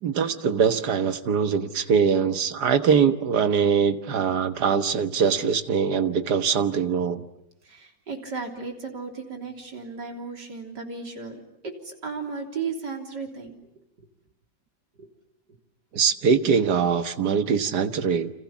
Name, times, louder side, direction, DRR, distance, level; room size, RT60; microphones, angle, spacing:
voice 1, 0.0-7.2 15.9-18.3, right 6 dB, 75° right, 10 dB, 1.9 m, -22 dB
voice 2, 7.7-11.4 11.6-13.6 15.0-15.1, right 4 dB, 90° right, 3 dB, 4.1 m, -35 dB
29.5 x 26.5 x 7.3 m, 0.79 s
omnidirectional pair, 1.8 m